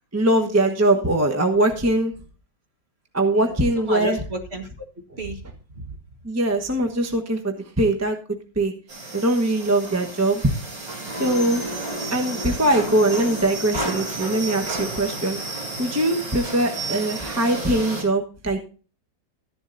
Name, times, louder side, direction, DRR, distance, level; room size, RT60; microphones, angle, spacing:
voice 1, 0.1-2.1 3.1-4.2 6.2-8.2 8.6-8.7 9.1-10.4 11.1-11.6 12.1-15.4 15.8-18.6, right 1 dB, 10° right, 4 dB, 0.8 m, -21 dB
voice 2, 3.3-4.7 5.2-6.0, right 1 dB, 35° right, 4 dB, 1.7 m, -32 dB
sound 1, 8.9-18.0, right 2 dB, 80° right, 3.9 m, -31 dB
13.5 x 11.0 x 2.6 m, 0.36 s
omnidirectional pair, 2.0 m